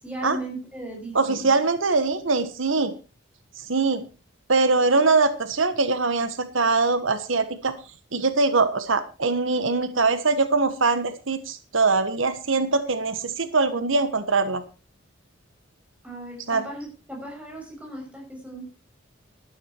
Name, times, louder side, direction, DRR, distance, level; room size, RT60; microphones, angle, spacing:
voice 1, 0.0-1.5 16.0-18.6, right 1 dB, 5° right, 0 dB, 6.5 m, -37 dB
voice 2, 1.1-2.9 3.6-4.0 4.5-7.7 8.1-14.6 16.5-16.6, right 3 dB, 75° right, 11 dB, 1.3 m, -22 dB
12.5 x 12.5 x 4.4 m, 0.32 s
head